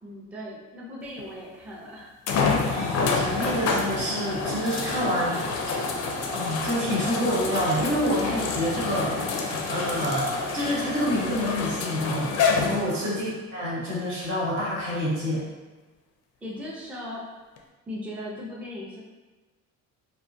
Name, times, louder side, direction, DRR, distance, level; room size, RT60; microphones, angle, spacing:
voice 1, 0.0-2.1 12.8-13.2 16.4-17.2 17.9-19.0, left 1 dB, 5° right, -5 dB, 0.4 m, -38 dB
sound 1, 1.2-1.3 2.3-13.3 14.0-14.1 17.6-17.7, left 5 dB, 55° left, 0.4 m, -28 dB
sound 2, 2.5-11.5, equal, 60° right, 0.9 m, -38 dB
voice 2, 2.6-5.8 6.3-15.4, equal, 75° right, -7 dB, 1.2 m, -28 dB
2.3 x 2.1 x 2.5 m, 1.3 s
cardioid pair, 95°, 32 cm